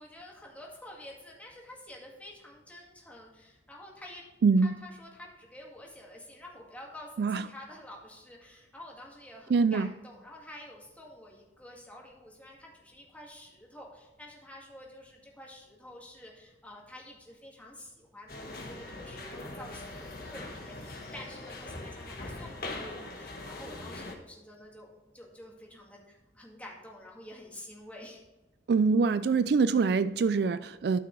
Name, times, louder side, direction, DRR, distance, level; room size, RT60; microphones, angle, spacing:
voice 1, 0.0-4.2 4.6-28.2, left 1 dB, 10° left, 2.0 m, -49 dB
voice 2, 4.4-4.8 7.2-7.5 9.5-9.9 28.7-31.0, right 4 dB, 60° right, 0.3 m, -24 dB
sound 1, 18.3-24.2, left 2 dB, 55° left, 1.4 m, -41 dB
13.0 x 5.8 x 3.2 m
head